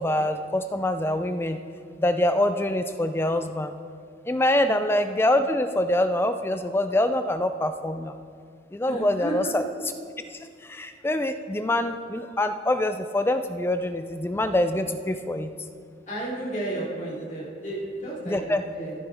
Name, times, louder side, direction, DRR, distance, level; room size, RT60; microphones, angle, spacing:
voice 1, 0.0-1.6 2.0-3.7 4.3-8.1 8.7-9.6 10.3-15.5 18.3-18.7, left 1 dB, 10° left, 9 dB, 0.3 m, -25 dB
voice 2, 8.9-9.5 16.1-18.9, right 2 dB, 40° left, -6 dB, 3.1 m, -33 dB
13.5 x 10.5 x 3.5 m, 2.2 s
head